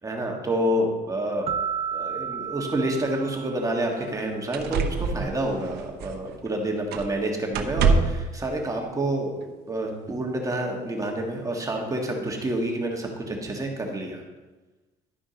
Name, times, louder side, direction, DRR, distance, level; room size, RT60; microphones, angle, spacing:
voice 1, 0.0-1.5 1.9-14.2, right 1 dB, 20° right, 1 dB, 1.6 m, -28 dB
sound 1, 1.5-4.2, right 7 dB, 35° right, 0.4 m, -32 dB
sound 2, 3.3-3.4 4.0-4.1 4.5-6.5 6.9-7.2 7.5-8.3 9.4-9.5, right 5 dB, 75° right, 0.8 m, -26 dB
11.5 x 5.0 x 5.1 m, 1.2 s
cardioid pair, 110°, 17 cm